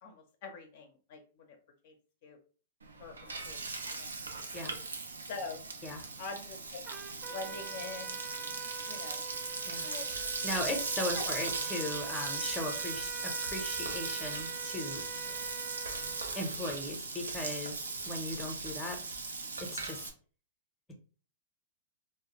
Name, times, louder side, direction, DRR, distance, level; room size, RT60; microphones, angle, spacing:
voice 1, 0.0-1.6 1.8-1.9 2.2-2.4 3.0-3.6 3.9-4.1 5.3-5.6 6.2-6.8 7.3-8.2 8.8-9.2 9.8-10.1 11.1-11.4 15.2-15.5, left 4 dB, 55° left, 3 dB, 0.5 m, -44 dB
Frying (food), 2.8-20.1, right 3 dB, 85° right, 0.5 m, -38 dB
Trumpet, 6.8-16.4, right 6 dB, 25° right, 0.3 m, -46 dB
voice 2, 10.4-15.0 16.3-17.8 18.1-19.0 19.6-20.1, left 1 dB, 10° left, 2 dB, 0.7 m, -38 dB
2.3 x 2.1 x 2.9 m, 0.39 s
hypercardioid pair, 115°, 0 cm